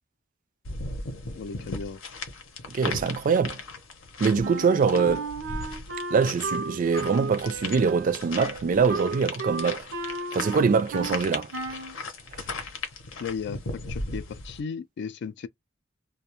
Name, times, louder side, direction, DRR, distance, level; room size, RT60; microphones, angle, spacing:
sound 1, 0.6-14.6, left 3 dB, 90° left, 0.8 m, -37 dB
voice 1, 1.3-2.0 13.2-15.5, left 6 dB, 60° left, 0.3 m, -35 dB
voice 2, 2.7-3.6 4.2-5.3 6.1-9.9 10.3-11.5, right 5 dB, 45° right, 0.3 m, -23 dB
Wind instrument woodwind instrument, 4.4-11.2 11.5-12.0, right 3 dB, 80° right, 0.6 m, -34 dB
2.3 x 2.1 x 2.9 m
head